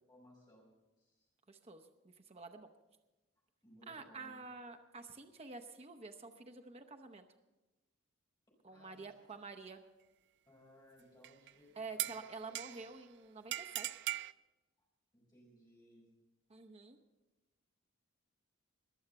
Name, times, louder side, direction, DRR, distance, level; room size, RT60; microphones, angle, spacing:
voice 1, 0.1-0.6 1.0-1.3 3.6-4.4 8.7-9.2 10.4-12.5 15.1-16.1, equal, 20° left, -4 dB, 4.9 m, -63 dB
voice 2, 1.5-2.7 3.9-7.3 8.6-9.8 11.8-14.0 16.5-17.0, right 4 dB, 30° right, 6 dB, 0.7 m, -49 dB
sound 1, 11.2-11.5 12.0-13.0 13.5-14.3, right 14 dB, 55° right, 0.4 m, -40 dB
21.0 x 7.1 x 6.8 m, 1.1 s
head